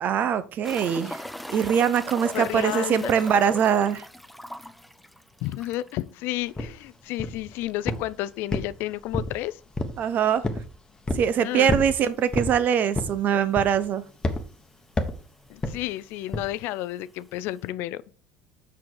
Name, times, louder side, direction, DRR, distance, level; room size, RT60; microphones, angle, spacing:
voice 1, 0.0-1.2 1.5-4.0 10.0-10.4 11.1-14.0, right 8 dB, 50° right, 0.8 m, -23 dB
sound 1, 0.6-6.0 6.3-6.4 6.8-6.9 9.6-9.7 11.4-11.5 12.3-12.4 12.6-12.7 13.6-13.7 13.9-14.5 15.5-15.6, equal, ahead, 0.5 m, -38 dB
voice 2, 2.3-3.2 5.4-9.6 11.4-11.7 15.5-18.0, left 15 dB, 65° left, 0.4 m, -31 dB
sound 2, 6.6-6.7 7.2-7.5 7.9-8.1 8.5-9.4 9.8-10.0 10.4-10.7 11.1-11.3 11.7-11.9 12.3-12.6 12.9-13.2 13.6-13.9 14.2-14.4 15.0-15.2 15.6-15.8 16.3-16.5, left 2 dB, 20° left, 1.3 m, -28 dB
6.0 x 5.9 x 4.7 m
supercardioid pair, 95°, 4 cm